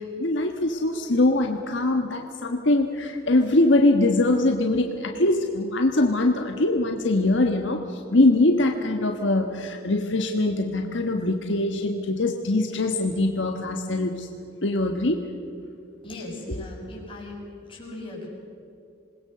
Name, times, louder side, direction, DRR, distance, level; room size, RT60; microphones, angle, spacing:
voice 1, 0.0-14.3 14.6-15.2 16.5-16.6, left 2 dB, 65° left, 4 dB, 1.4 m, -22 dB
voice 2, 16.0-17.3 17.6-18.3, left 2 dB, 25° left, -3 dB, 6.5 m, -38 dB
27.5 x 20.5 x 6.8 m, 2.8 s
head